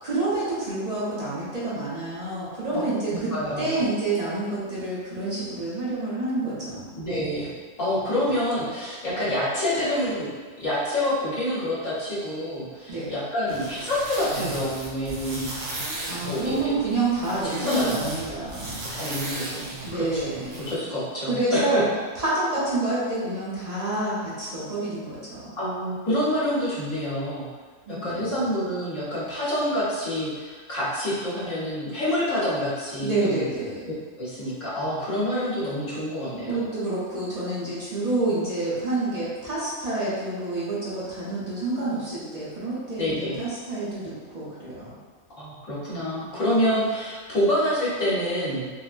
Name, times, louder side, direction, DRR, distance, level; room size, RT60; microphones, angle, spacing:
voice 1, 0.0-3.3 3.6-7.0 12.9-13.1 16.1-18.7 19.8-20.6 21.3-21.8 22.2-25.5 27.9-28.5 33.0-33.8 36.5-44.9, right 2 dB, 35° right, -9 dB, 0.7 m, -28 dB
voice 2, 3.1-3.8 6.9-7.5 7.8-10.3 10.6-15.5 16.2-16.7 17.5-18.1 18.9-22.0 25.6-27.5 27.9-33.4 34.2-36.6 42.2-42.3 43.0-43.4 45.4-48.7, left 1 dB, 70° left, -9 dB, 1.4 m, -27 dB
sound 1, 13.5-20.7, right 2 dB, 85° right, 1.1 m, -35 dB
3.6 x 2.2 x 2.5 m, 1.5 s
omnidirectional pair, 1.4 m